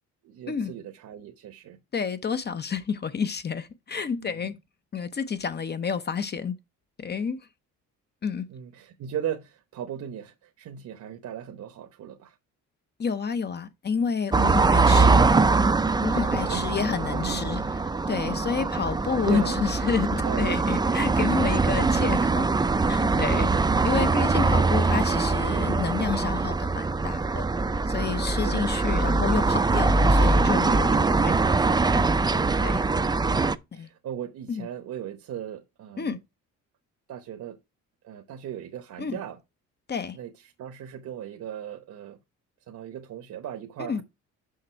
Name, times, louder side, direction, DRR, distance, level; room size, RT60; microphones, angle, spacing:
voice 1, 0.2-1.8 4.2-4.5 8.5-12.4 14.7-15.6 16.4-16.7 17.0-17.7 19.2-19.7 20.2-20.8 24.6-25.2 28.4-28.7 33.2-36.2 37.1-37.6 38.0-39.4 40.1-40.3 40.6-42.2 42.7-44.0, right 10 dB, 70° right, 1.0 m, -37 dB
voice 2, 1.9-4.5 4.9-6.5 7.0-7.4 8.2-8.5 13.0-15.2 16.0-17.6 18.1-22.5 22.8-23.5 23.8-27.5 27.9-32.0 32.6-32.8 33.7-33.9 34.5-34.7 36.0-36.2 39.0-39.2 39.9-40.2 43.9-44.0, left 6 dB, 35° left, 0.7 m, -29 dB
sound 1, 14.3-33.6, right 3 dB, 15° right, 0.4 m, -23 dB
6.5 x 5.4 x 4.4 m
cardioid pair, 90°, 30 cm